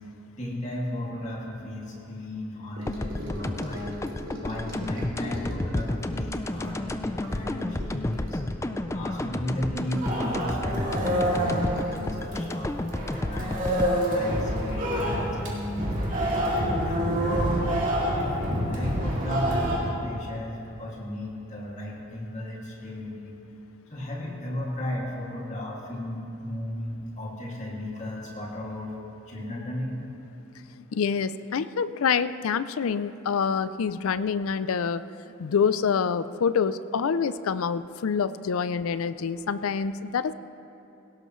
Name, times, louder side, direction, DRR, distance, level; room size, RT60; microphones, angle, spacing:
voice 1, 0.4-4.0 4.4-8.4 8.9-13.6 14.0-17.7 18.1-23.4 23.9-29.0 29.3-30.0, left 1 dB, 35° left, -3 dB, 2.3 m, -35 dB
Gurgling / Sink (filling or washing) / Trickle dribble, 2.8-14.4 14.7-15.0 15.3-15.4, equal, 65° right, 2.9 m, -43 dB
sound 1, 2.9-15.7, left 1 dB, 15° left, 0.3 m, -32 dB
sound 2, 10.0-12.6 12.9-19.8, equal, 40° right, 2.5 m, -27 dB
voice 2, 30.7-35.0 35.4-40.3, left 6 dB, 75° left, 15 dB, 0.4 m, -26 dB
17.5 x 17.5 x 3.1 m, 2.8 s
head